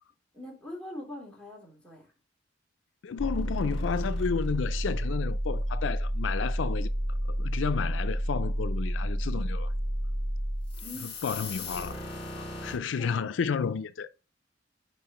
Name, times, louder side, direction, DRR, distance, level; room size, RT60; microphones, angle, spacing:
voice 1, 0.3-2.1 10.8-11.2 12.9-13.4, left 1 dB, 5° left, 3.2 m, -43 dB
voice 2, 3.0-6.9 7.4-9.7 11.2-12.0 12.4-14.1, left 6 dB, 80° left, 0.4 m, -31 dB
sound 1, 3.2-12.8, equal, 30° left, 4.6 m, -31 dB
10.5 x 4.3 x 3.0 m
head